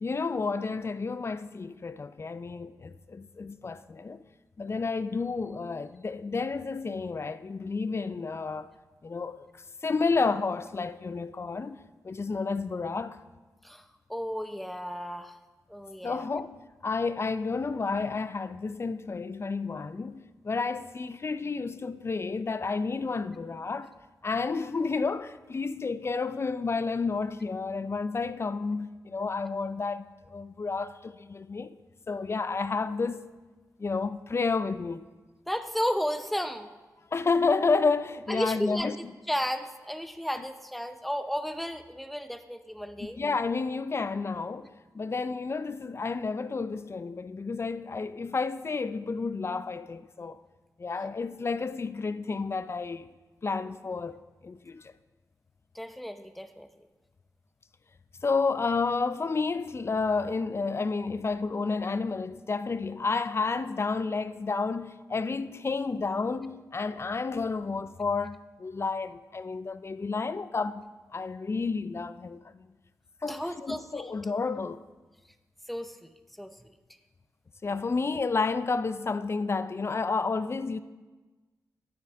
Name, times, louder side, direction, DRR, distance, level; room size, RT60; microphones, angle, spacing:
voice 1, 0.0-4.2 4.6-8.7 9.0-9.4 9.8-13.2 16.0-23.9 24.2-31.8 32.1-33.2 33.8-35.0 37.1-39.1 43.2-50.4 50.8-53.1 53.4-54.2 54.4-54.9 58.2-70.8 71.1-72.7 73.2-74.8 77.6-80.8, left 4 dB, 40° left, 0.4 m, -31 dB
voice 2, 14.1-15.3 15.7-16.3 35.5-36.7 38.3-43.2 55.7-56.7 73.2-74.1 75.7-76.1 76.4-76.5, equal, ahead, 0.7 m, -33 dB
11.0 x 9.4 x 3.4 m
cardioid pair, 65°, 7 cm